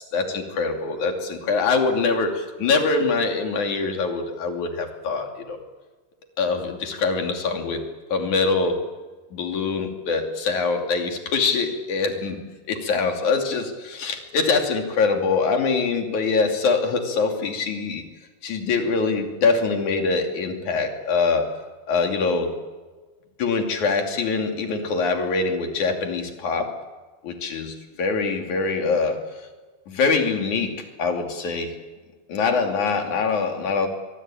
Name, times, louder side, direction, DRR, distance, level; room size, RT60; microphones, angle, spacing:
voice 1, 0.1-5.6 6.4-7.8 8.1-8.8 9.3-18.1 18.4-21.5 21.9-22.5 23.4-26.7 27.2-29.2 29.9-31.7 32.3-33.9, left 4 dB, 45° left, 4 dB, 3.6 m, -24 dB
24.0 x 23.5 x 8.9 m, 1.3 s
omnidirectional pair, 5.4 m